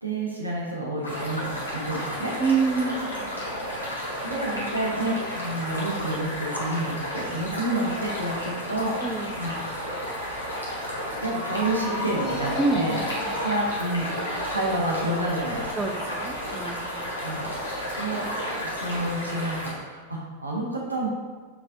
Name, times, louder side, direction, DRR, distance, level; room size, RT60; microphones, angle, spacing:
voice 1, 0.0-2.3 4.1-9.7 11.2-13.0 13.4-14.1 14.5-15.7 17.2-17.5 18.0-18.2 18.6-21.1, right 1 dB, 85° right, -3 dB, 0.9 m, -29 dB
sound 1, 1.0-19.7, equal, 80° left, 1.0 m, -32 dB
voice 2, 2.4-3.4 9.0-9.3 12.6-13.4 15.7-17.1, right 4 dB, 10° right, 3 dB, 0.4 m, -27 dB
Ringtone, 10.2-17.7, left 2 dB, 55° left, 0.7 m, -39 dB
Laughter, 12.1-14.9, left 1 dB, 25° left, 1.1 m, -39 dB
6.0 x 3.3 x 2.6 m, 1.4 s
figure-of-eight pair, 90°, 0 cm